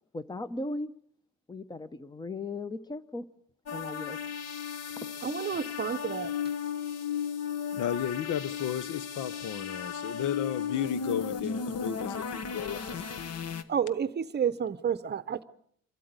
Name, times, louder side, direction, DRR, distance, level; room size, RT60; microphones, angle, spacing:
voice 1, 0.1-0.9 1.5-3.3 3.7-4.2 5.0-5.1, left 2 dB, 15° left, 15 dB, 0.7 m, -37 dB
sound 1, 3.7-13.6, left 7 dB, 55° left, 1.2 m, -35 dB
voice 2, 5.2-6.3 13.7-15.4, right 8 dB, 35° right, 14 dB, 0.7 m, -30 dB
voice 3, 7.7-13.0, left 10 dB, 85° left, 15 dB, 1.0 m, -34 dB
25.0 x 13.0 x 8.1 m, 0.65 s
cardioid pair, 160°, 30 cm